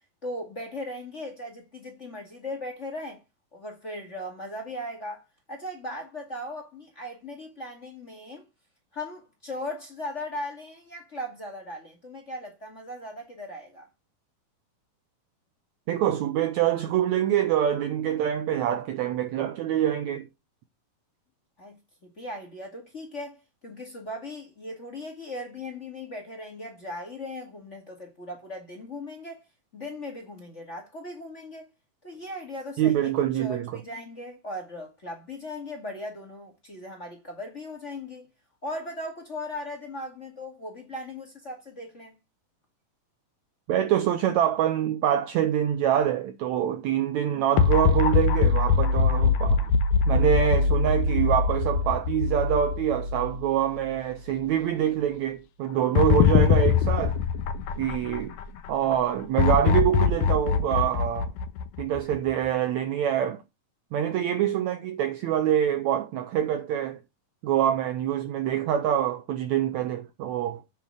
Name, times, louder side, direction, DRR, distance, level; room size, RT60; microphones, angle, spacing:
voice 1, 0.2-3.2 3.5-8.4 8.9-13.9 21.6-21.8 22.0-29.4 29.7-31.7 32.0-33.1 33.4-38.3 38.6-42.2, left 1 dB, 25° left, 1.8 m, -38 dB
voice 2, 15.9-20.3 32.8-33.7 43.7-49.7 50.1-57.2 57.8-58.3 58.7-61.3 61.8-63.4 63.9-67.0 67.4-70.6, right 10 dB, 85° right, 1.6 m, -25 dB
sound 1, 47.6-53.9 54.3-54.4 56.0-58.4 59.4-62.1, left 5 dB, 70° left, 2.0 m, -22 dB
9.1 x 4.5 x 6.3 m
omnidirectional pair, 4.1 m